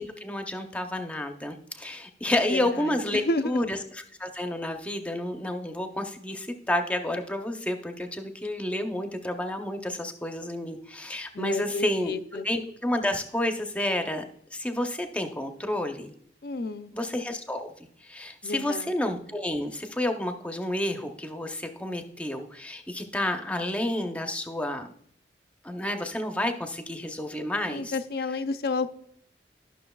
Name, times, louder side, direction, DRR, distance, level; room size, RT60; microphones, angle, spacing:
voice 1, 0.0-14.2 14.5-16.1 16.9-17.7 18.0-24.9 25.6-28.0, left 1 dB, 10° left, 5 dB, 0.6 m, -30 dB
voice 2, 2.5-2.8 3.1-3.6 11.3-12.5 16.4-16.9 18.4-18.9 27.7-28.9, left 3 dB, 60° left, 11 dB, 0.5 m, -30 dB
12.0 x 6.2 x 2.3 m, 0.65 s
head